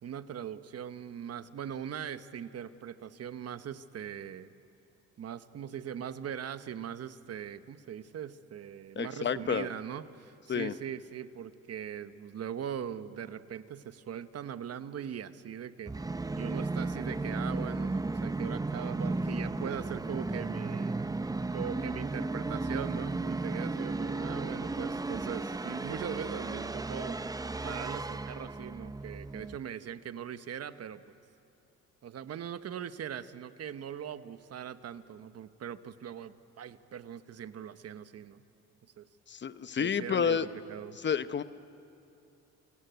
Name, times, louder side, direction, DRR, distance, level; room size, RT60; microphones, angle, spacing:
voice 1, 0.0-4.5 5.2-15.9 16.4-21.0 21.5-27.2 27.6-31.2 32.0-38.4 39.0-39.1 39.8-41.0, right 8 dB, 55° right, 12 dB, 1.0 m, -40 dB
voice 2, 9.0-9.7 10.5-10.7 39.3-40.5 41.0-41.4, left 7 dB, 35° left, 13 dB, 0.8 m, -30 dB
Musical instrument, 15.9-29.6, right 3 dB, 10° right, 0.6 m, -34 dB
28.0 x 17.5 x 9.4 m, 2.6 s
cardioid pair, 90°, 30 cm